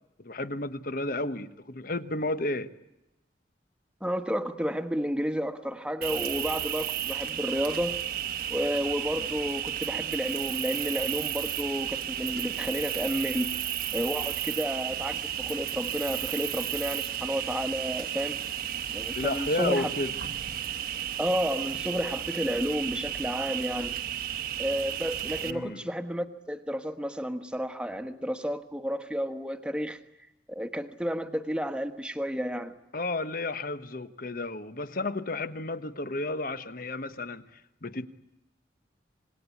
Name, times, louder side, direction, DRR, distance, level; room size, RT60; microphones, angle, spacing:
voice 1, 0.2-2.7 9.2-9.3 19.1-20.1 25.4-25.8 32.9-38.1, left 2 dB, 50° left, 1.2 m, -32 dB
voice 2, 4.0-8.0 8.5-13.5 13.9-18.4 18.9-19.9 21.2-24.0 24.6-30.0 30.5-32.7, equal, 5° right, 1.3 m, -31 dB
Cricket, 6.0-25.5, right 10 dB, 55° right, 1.2 m, -33 dB
26.5 x 21.0 x 8.4 m
head